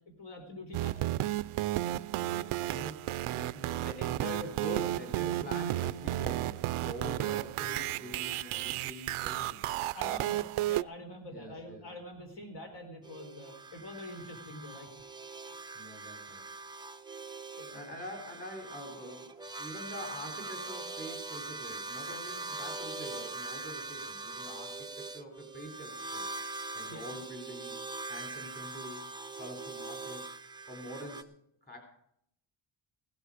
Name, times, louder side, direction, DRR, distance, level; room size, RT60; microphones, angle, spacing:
voice 1, 0.2-1.2 9.9-14.9 17.6-17.9 26.9-27.1, left 1 dB, 55° left, 3 dB, 4.1 m, -45 dB
sound 1, 0.7-10.8, right 15 dB, 80° right, 0.6 m, -33 dB
voice 2, 2.1-9.6 11.3-11.8 15.7-16.4 17.7-26.3 26.7-27.8 28.1-29.1 29.4-30.3 30.7-31.3 31.6-31.8, equal, 20° left, 2 dB, 3.5 m, -44 dB
sound 2, 13.0-31.2, right 3 dB, 10° right, 0.6 m, -42 dB
17.0 x 11.5 x 5.0 m, 0.71 s
wide cardioid pair, 180°, 50 cm